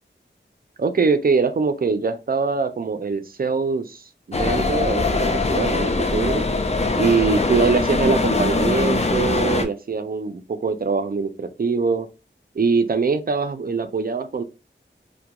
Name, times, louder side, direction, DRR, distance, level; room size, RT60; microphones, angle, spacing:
voice 1, 0.8-6.4 7.0-12.1 12.5-14.4, right 4 dB, 50° right, 9 dB, 0.4 m, -23 dB
sound 1, 4.3-9.6, left 3 dB, 35° left, 0.4 m, -22 dB
2.3 x 2.1 x 2.8 m, 0.30 s
wide cardioid pair, 55°, 20 cm